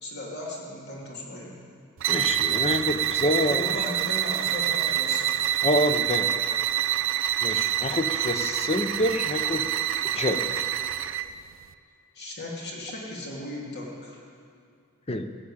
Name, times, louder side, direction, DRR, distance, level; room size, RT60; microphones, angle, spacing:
voice 1, 0.0-1.6 3.5-5.3 12.1-14.2, left 1 dB, 55° left, -3 dB, 2.9 m, -36 dB
sound 1, 2.0-11.3, right 11 dB, 65° right, 0.5 m, -26 dB
voice 2, 2.1-3.8 5.6-6.3 7.4-9.7 10.1-10.6 15.1-15.3, left 1 dB, 30° left, 8 dB, 0.8 m, -27 dB
15.5 x 8.8 x 8.5 m, 2.4 s
head